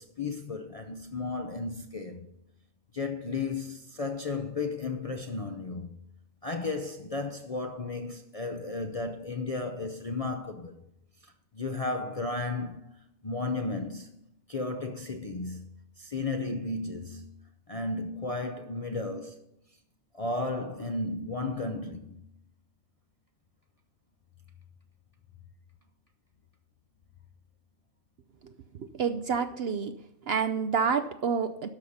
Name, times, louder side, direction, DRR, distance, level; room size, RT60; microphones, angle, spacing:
voice 1, 0.0-2.3 2.9-6.0 6.4-10.8 11.2-14.2 14.5-15.7 16.0-17.3 17.7-19.4 20.1-22.2, left 3 dB, 40° left, 0.5 m, -34 dB
voice 2, 28.8-30.0 30.3-31.7, right 6 dB, 60° right, 0.7 m, -28 dB
12.5 x 5.7 x 6.5 m
omnidirectional pair, 1.5 m